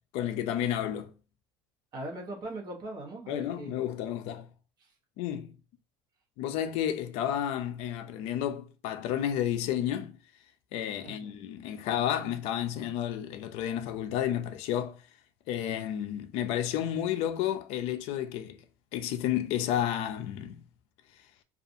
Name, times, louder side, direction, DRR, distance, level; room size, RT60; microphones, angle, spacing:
voice 1, 0.1-1.1 3.3-4.5 5.2-5.6 6.4-10.2 10.7-15.0 15.5-18.6 18.9-20.6, left 10 dB, 65° left, 0.4 m, -31 dB
voice 2, 1.9-3.8 4.8-4.9 11.0-11.3, right 2 dB, 40° right, 0.9 m, -40 dB
2.7 x 2.4 x 2.5 m
cardioid pair, 155°, 11 cm